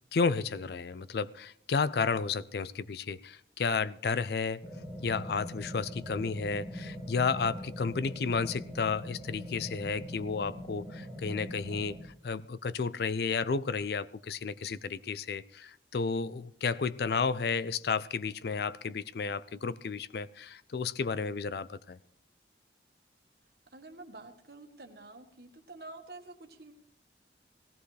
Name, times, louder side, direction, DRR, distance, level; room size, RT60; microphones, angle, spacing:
voice 1, 0.1-4.7 5.0-22.0, left 5 dB, 60° left, 0.4 m, -32 dB
sound 1, 4.6-12.0, left 1 dB, 40° left, 5.5 m, -42 dB
voice 2, 23.7-26.7, right 2 dB, 60° right, 1.5 m, -48 dB
18.0 x 15.0 x 3.3 m
head